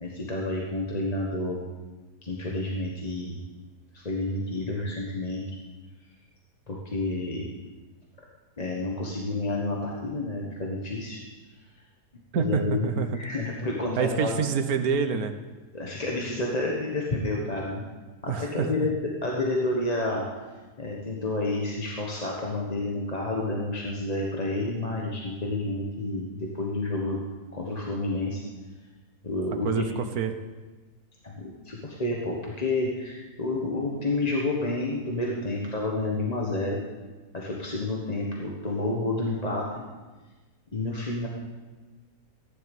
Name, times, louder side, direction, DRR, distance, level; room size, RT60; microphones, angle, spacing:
voice 1, 0.0-1.6 2.2-3.4 3.9-5.4 6.7-7.5 8.6-11.2 11.7-11.8 12.4-14.4 15.7-17.8 18.2-18.9 19.2-20.2 20.8-27.2 27.5-28.4 29.2-29.9 31.2-36.8 37.3-39.8 40.7-41.3, left 2 dB, 25° left, -2 dB, 1.3 m, -30 dB
voice 2, 12.3-13.1 14.0-15.3 18.3-18.9 29.6-30.3, right 6 dB, 65° right, 8 dB, 1.3 m, -27 dB
15.0 x 10.5 x 5.4 m, 1.3 s
omnidirectional pair, 1.8 m